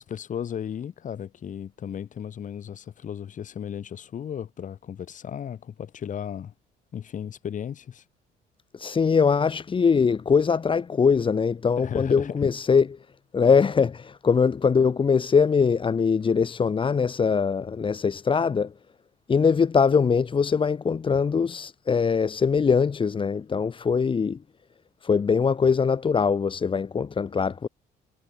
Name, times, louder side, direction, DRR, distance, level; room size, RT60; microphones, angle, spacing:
voice 1, 0.0-6.5 6.9-8.0 11.8-12.4, left 9 dB, 50° left, 7.9 m, -35 dB
voice 2, 8.7-12.9 13.3-18.7 19.3-24.4 25.0-27.7, left 5 dB, 30° left, 2.0 m, -22 dB
cardioid pair, 110°, 17 cm